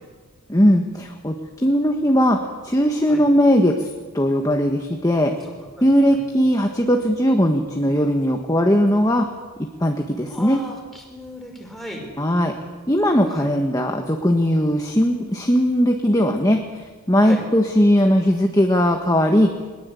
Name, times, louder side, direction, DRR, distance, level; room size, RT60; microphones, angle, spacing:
voice 1, 0.5-1.4 1.6-3.8 4.1-5.3 5.8-9.2 9.8-10.6 12.2-12.5 12.9-16.6 17.1-19.5, equal, 15° left, 3 dB, 1.4 m, -18 dB
voice 2, 5.8-6.2 10.3-12.1 13.3-13.5 17.2-17.4, equal, ahead, 0 dB, 5.3 m, -36 dB
22.0 x 21.0 x 8.5 m, 1.3 s
head